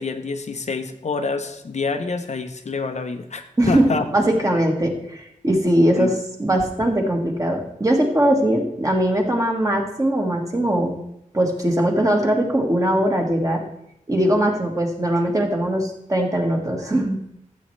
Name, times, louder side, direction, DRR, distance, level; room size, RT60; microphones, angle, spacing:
voice 1, 0.0-4.1 6.0-6.1, left 4 dB, 60° left, 7 dB, 0.7 m, -27 dB
voice 2, 4.1-11.0 11.3-13.6 14.1-17.2, right 1 dB, 25° right, 1 dB, 1.5 m, -20 dB
14.0 x 7.6 x 3.2 m, 0.78 s
wide cardioid pair, 110°, 13 cm